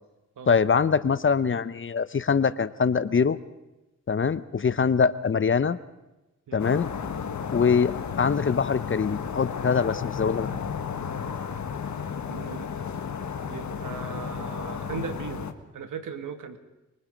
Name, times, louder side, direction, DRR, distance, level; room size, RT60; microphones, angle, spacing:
voice 1, 0.5-3.4 4.1-5.8 6.5-6.9 7.5-10.5, left 6 dB, 40° left, 15 dB, 0.8 m, -23 dB
sound 1, 6.6-15.5, left 7 dB, 65° left, 1.5 m, -33 dB
voice 2, 12.1-12.7 13.5-15.5 15.7-16.6, right 6 dB, 85° right, 8 dB, 1.9 m, -37 dB
24.5 x 23.5 x 5.3 m, 1.0 s
cardioid pair, 90°, 30 cm